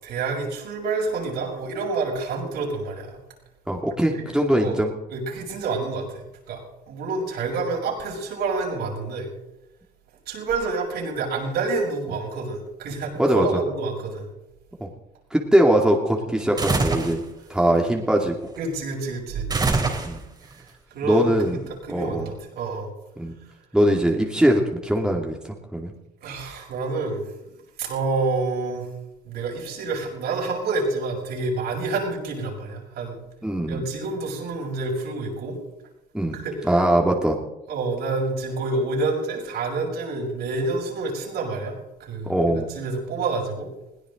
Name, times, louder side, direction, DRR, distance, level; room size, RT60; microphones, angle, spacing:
voice 1, 0.0-3.2 4.1-4.2 4.6-4.8 5.1-6.6 6.9-9.3 10.3-14.3 18.5-19.5 20.4-20.7 20.9-21.6 21.8-22.9 26.2-28.9 29.2-33.2 33.7-35.6 36.3-36.8 37.7-42.3 42.7-43.7, right 3 dB, 75° right, -2 dB, 6.8 m, -28 dB
voice 2, 3.7-4.9 13.2-13.5 14.8-14.9 15.3-17.2 17.5-18.4 20.0-20.2 21.0-21.6 21.9-22.3 23.2-23.3 23.7-25.4 25.7-25.9 33.4-33.8 36.1-36.4 36.6-37.4 42.2-42.7, right 1 dB, 5° right, 0 dB, 2.6 m, -21 dB
sound 1, 16.6-17.2 19.5-20.4, right 3 dB, 25° right, 3.4 m, -23 dB
21.0 x 17.0 x 3.9 m, 0.92 s
cardioid pair, 110°, 17 cm